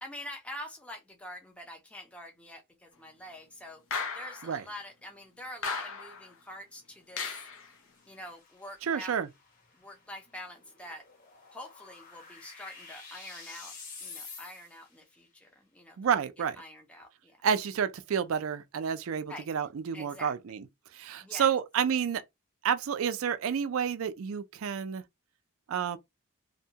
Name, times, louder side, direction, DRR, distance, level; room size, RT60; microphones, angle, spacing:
voice 1, 0.0-3.8 4.1-7.4 8.1-9.1 9.7-11.0 11.5-16.1 16.6-17.4 19.3-19.5 19.9-20.3 21.2-21.5, left 1 dB, 5° left, 0.5 m, -45 dB
sound 1, 3.9-4.6 5.6-6.3 7.2-7.7, left 5 dB, 70° left, 0.7 m, -35 dB
sound 2, 7.5-15.0, left 4 dB, 40° left, 1.2 m, -50 dB
voice 2, 8.9-9.3 16.0-16.6 17.4-20.6 20.9-22.2 22.6-25.0 25.7-26.0, right 7 dB, 75° right, 0.4 m, -30 dB
2.7 x 2.2 x 2.7 m
head